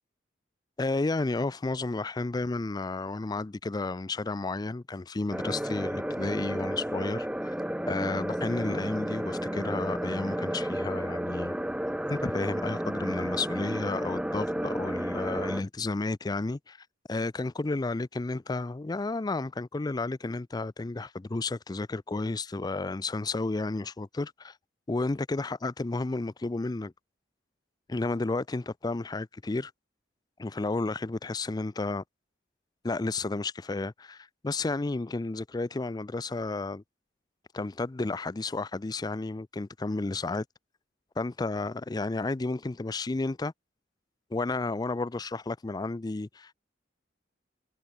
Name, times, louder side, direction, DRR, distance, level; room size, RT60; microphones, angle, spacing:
voice 1, 0.8-7.3 7.9-11.6 12.1-16.8 17.1-24.5 24.9-26.9 27.9-29.7 30.4-32.0 32.8-36.8 37.5-40.4 41.2-43.5 44.3-46.5, left 3 dB, 20° left, 0.4 m, -32 dB
sound 1, 5.3-15.6, equal, 5° right, 0.9 m, -32 dB
head